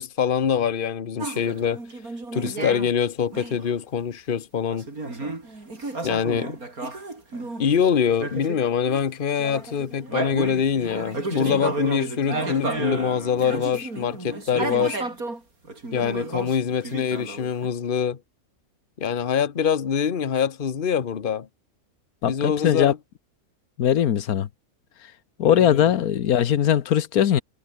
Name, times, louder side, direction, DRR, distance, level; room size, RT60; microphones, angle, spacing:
voice 1, 0.0-1.8 2.3-4.9 6.0-6.6 7.6-15.0 15.9-18.2 19.0-21.5 22.2-23.0 25.4-25.9, left 7 dB, 40° left, 1.2 m, -24 dB
sound 1, 1.2-2.9 3.3-3.7 4.7-7.7 8.1-9.1 9.4-15.4 15.7-17.7, right 2 dB, 80° right, 5.5 m, -32 dB
voice 2, 22.2-22.9 23.8-24.5 25.4-27.4, left 10 dB, 90° left, 1.5 m, -20 dB
omnidirectional pair, 1.5 m